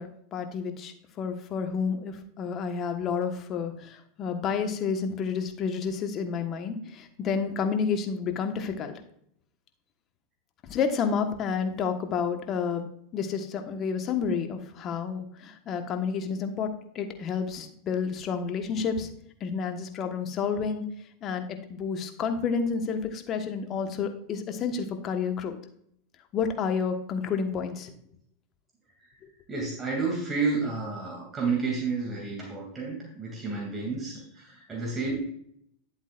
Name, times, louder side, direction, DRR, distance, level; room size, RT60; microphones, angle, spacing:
voice 1, 0.0-9.0 10.7-12.9 13.1-19.1 19.4-20.8 21.2-25.6 26.3-27.9, left 6 dB, 40° left, 6 dB, 1.4 m, -30 dB
voice 2, 29.5-35.2, right 4 dB, 25° right, -2 dB, 2.7 m, -31 dB
10.5 x 8.0 x 2.5 m, 0.69 s
hypercardioid pair, 95°, 0 cm